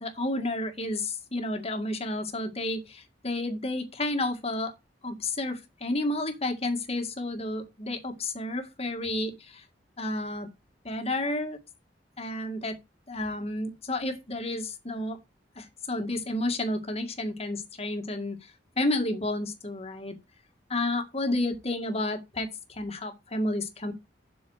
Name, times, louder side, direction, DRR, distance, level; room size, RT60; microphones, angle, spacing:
voice 1, 0.0-4.7 5.0-9.6 10.0-10.5 10.8-11.6 12.2-12.8 13.1-15.2 15.6-18.4 18.8-20.1 20.7-23.9, left 1 dB, 35° left, 2.0 m, -31 dB
7.9 x 5.7 x 6.4 m
head